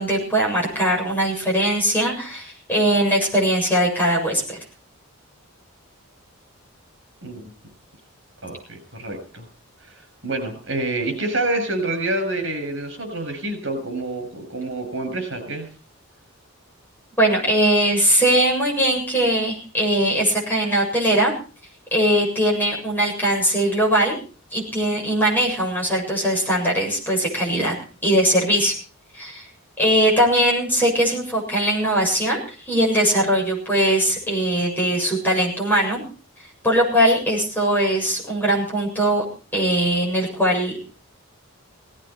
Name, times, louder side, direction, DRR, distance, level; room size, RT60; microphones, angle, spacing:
voice 1, 0.0-4.6 17.2-21.3 21.9-24.1 24.5-27.7 28.0-28.7 29.1-29.5 29.8-36.0 36.6-39.2 39.5-40.9, right 1 dB, 10° left, -2 dB, 7.5 m, -20 dB
voice 2, 8.4-9.5 9.9-15.7, right 2 dB, 55° right, 8 dB, 7.1 m, -27 dB
18.5 x 16.5 x 4.6 m, 0.37 s
head